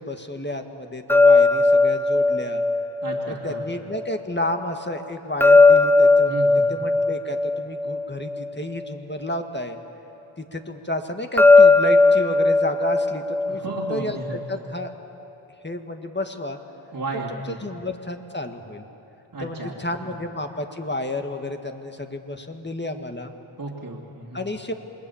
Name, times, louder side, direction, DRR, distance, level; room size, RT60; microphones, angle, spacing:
voice 1, 0.0-2.6 3.3-9.8 10.4-13.6 13.9-14.9 15.6-16.6 17.3-18.9 19.4-23.3 24.3-24.7, left 1 dB, 20° left, 5 dB, 1.9 m, -31 dB
sound 1, 1.1-4.2 5.4-8.9 11.4-14.5, left 3 dB, 5° left, 0.5 m, -18 dB
voice 2, 3.0-3.6 6.2-6.8 13.5-14.6 16.9-17.8 19.3-19.7 20.0-20.1 23.6-24.5, right 2 dB, 45° right, -5 dB, 2.8 m, -34 dB
28.0 x 20.5 x 7.2 m, 3.0 s
cardioid pair, 45°, 48 cm